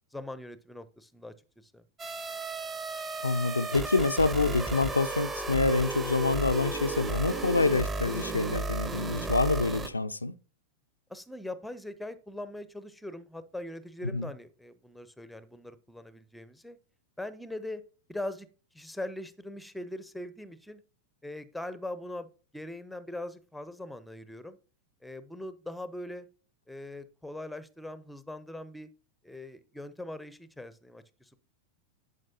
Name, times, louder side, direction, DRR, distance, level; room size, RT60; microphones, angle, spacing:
voice 1, 0.1-1.3 1.6-1.8 11.1-16.8 17.2-17.8 18.1-18.5 18.7-20.8 21.2-24.6 25.0-26.3 26.7-28.9 29.2-31.4, left 1 dB, 5° left, 0.6 m, -41 dB
sound 1, 2.0-9.9, right 3 dB, 20° right, 0.9 m, -34 dB
voice 2, 3.2-10.3 14.0-14.3, left 3 dB, 80° left, 0.4 m, -27 dB
10.5 x 5.1 x 2.8 m
figure-of-eight pair, 90°, 0 cm